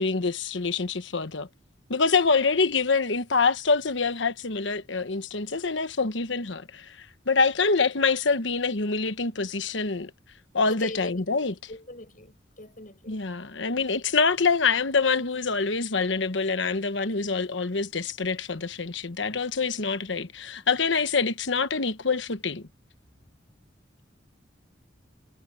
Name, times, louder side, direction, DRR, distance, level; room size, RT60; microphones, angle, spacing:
voice 1, 0.0-1.5 1.9-6.8 7.3-10.1 10.5-11.5 13.1-22.7, left 4 dB, 75° left, 1.2 m, -25 dB
voice 2, 10.7-11.2 11.7-13.2 19.2-19.3, left 2 dB, 45° left, 6.4 m, -41 dB
head